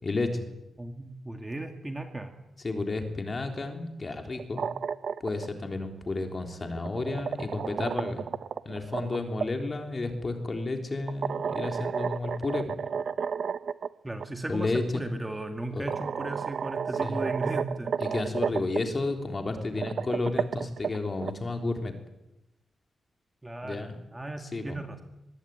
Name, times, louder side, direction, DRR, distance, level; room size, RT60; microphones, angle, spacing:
voice 1, 0.0-0.5 2.6-4.6 5.2-8.3 8.7-12.7 14.5-15.0 15.7-15.9 17.0-17.2 18.0-21.9 23.6-24.0 24.4-24.8, left 2 dB, 30° left, 5 dB, 3.5 m, -32 dB
voice 2, 0.8-2.3 14.0-17.9 23.4-25.0, right 2 dB, 10° right, 5 dB, 2.2 m, -36 dB
sound 1, 4.3-5.5 6.6-9.5 11.1-13.9 14.2-14.3 15.3-15.4 15.9-18.8 19.6-21.3, right 6 dB, 60° right, 0.8 m, -32 dB
24.0 x 22.0 x 9.2 m, 0.91 s
wide cardioid pair, 150°, 0 cm